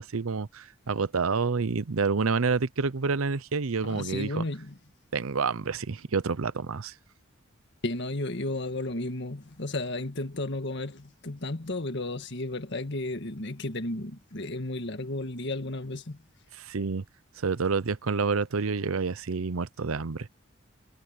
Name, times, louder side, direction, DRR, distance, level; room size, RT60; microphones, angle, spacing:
voice 1, 0.0-4.4 5.1-6.9 16.6-17.0 17.4-20.3, right 4 dB, 85° right, 0.7 m, -28 dB
voice 2, 3.8-4.8 7.8-16.2, left 2 dB, 55° left, 1.7 m, -33 dB
head